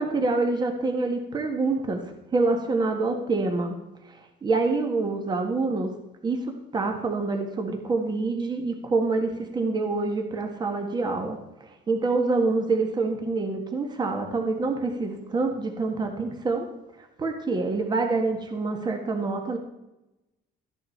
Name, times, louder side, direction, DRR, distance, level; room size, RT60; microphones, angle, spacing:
voice 1, 0.0-2.0 2.3-3.8 4.1-5.9 6.2-16.7 17.2-19.6, right 3 dB, 25° right, 4 dB, 1.5 m, -26 dB
13.5 x 9.9 x 4.4 m, 0.97 s
cardioid pair, 165°, 18 cm